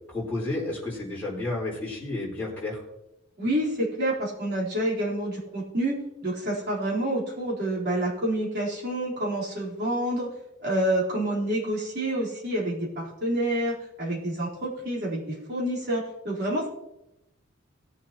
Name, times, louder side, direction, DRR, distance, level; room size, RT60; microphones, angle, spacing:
voice 1, 0.1-2.8, left 2 dB, 5° left, -8 dB, 4.2 m, -31 dB
voice 2, 3.4-10.3 10.6-16.7, right 1 dB, 55° right, -5 dB, 4.1 m, -28 dB
19.0 x 7.3 x 3.0 m, 0.89 s
head